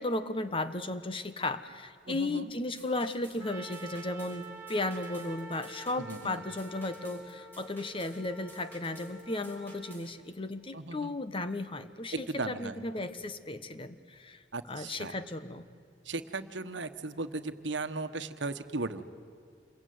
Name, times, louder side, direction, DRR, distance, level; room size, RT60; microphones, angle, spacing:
voice 1, 0.0-15.7, left 2 dB, 30° left, 11 dB, 1.1 m, -35 dB
voice 2, 2.0-2.5 6.1-6.4 10.7-11.1 12.3-12.8 14.5-15.1 16.0-19.0, right 3 dB, 80° right, 9 dB, 1.3 m, -37 dB
sound 1, 2.5-10.1, equal, 10° left, 4.6 m, -55 dB
Trumpet, 3.4-10.0, right 2 dB, 15° right, 2.6 m, -48 dB
27.5 x 22.5 x 9.5 m, 2.4 s
head